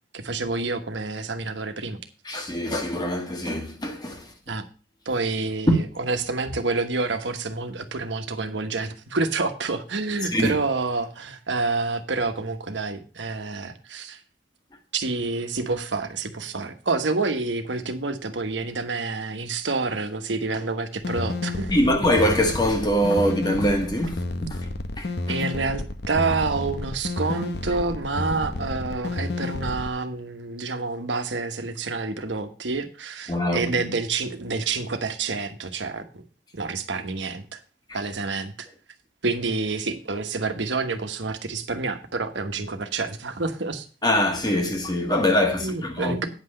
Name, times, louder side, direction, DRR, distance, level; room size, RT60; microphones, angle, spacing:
voice 1, 0.1-2.0 4.5-4.6 5.0-14.2 14.9-21.7 25.3-36.2 36.5-37.6 37.9-38.5 39.2-43.9 45.5-46.3, right 3 dB, 90° right, 1.2 m, -28 dB
voice 2, 2.2-4.3 5.7-5.8 10.2-10.6 21.7-24.7 25.0-25.4 33.3-33.9 44.0-46.3, equal, 20° left, 1.5 m, -23 dB
sound 1, 21.0-29.9, left 2 dB, 65° left, 0.9 m, -31 dB
9.4 x 5.8 x 6.5 m
head